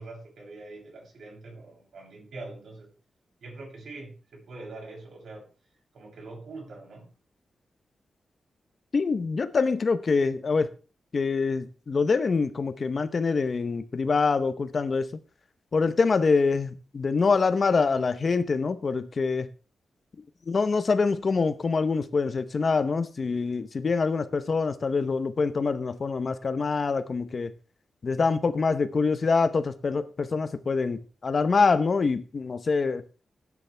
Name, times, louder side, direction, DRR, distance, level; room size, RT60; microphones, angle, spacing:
voice 1, 0.0-2.9 3.4-5.5 5.9-7.1, right 2 dB, 70° right, 7.9 m, -43 dB
voice 2, 8.9-10.7 11.1-15.1 15.7-19.5 20.5-27.5 28.0-33.0, left 4 dB, 40° left, 0.9 m, -25 dB
17.5 x 9.7 x 3.5 m
wide cardioid pair, 155°, 0 cm